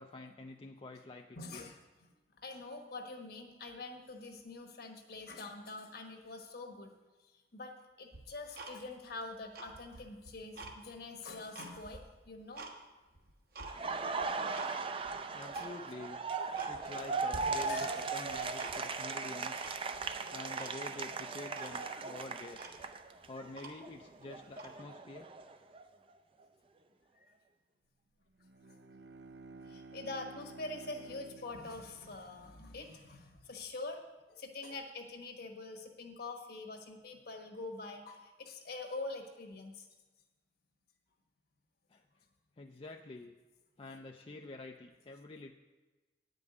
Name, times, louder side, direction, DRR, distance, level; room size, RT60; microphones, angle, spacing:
voice 1, 0.0-1.7 15.3-16.2 16.7-19.7 20.3-22.7 23.3-25.3 41.9-42.0 42.6-43.3 43.8-45.5, left 2 dB, 30° left, 3 dB, 0.4 m, -48 dB
voice 2, 1.3-1.8 2.3-6.9 7.5-12.7 14.7-14.9 17.7-18.1 27.2-27.3 29.6-34.0 34.3-39.9, left 3 dB, 60° left, 4 dB, 1.3 m, -45 dB
Tick-tock, 8.1-9.1 9.5-10.8 11.2-12.8 13.1-13.7 14.2-14.7 15.0-15.1 15.5-15.7 16.1-16.2 16.5-17.1 17.3-18.0 18.2-19.0 19.6-20.1 20.6-20.8 21.1-21.2 21.5-21.8 22.3-22.4 22.5-24.0 24.5-24.8, right 2 dB, 55° right, 1.2 m, -48 dB
Laughter, 13.6-23.5 23.8-25.8, right 4 dB, 30° right, 0.5 m, -38 dB
Bowed string instrument, 28.3-33.0, right 3 dB, 75° right, 0.7 m, -53 dB
9.6 x 5.3 x 8.1 m, 1.2 s
head